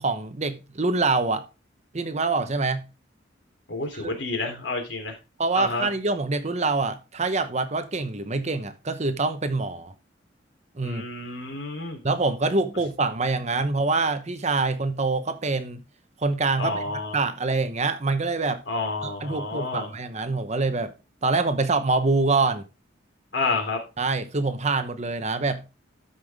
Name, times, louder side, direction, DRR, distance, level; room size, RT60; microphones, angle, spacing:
voice 1, 0.0-1.5 1.9-2.9 3.9-4.1 5.4-9.9 10.7-11.0 12.0-15.8 16.2-18.6 19.0-20.9 21.2-22.7 24.0-25.6, right 3 dB, 35° right, 1.0 m, -25 dB
voice 2, 3.7-5.2 5.6-5.9 10.8-12.0 16.6-17.2 18.7-19.9 23.3-23.8, left 3 dB, 70° left, 3.5 m, -29 dB
13.0 x 5.7 x 3.6 m
head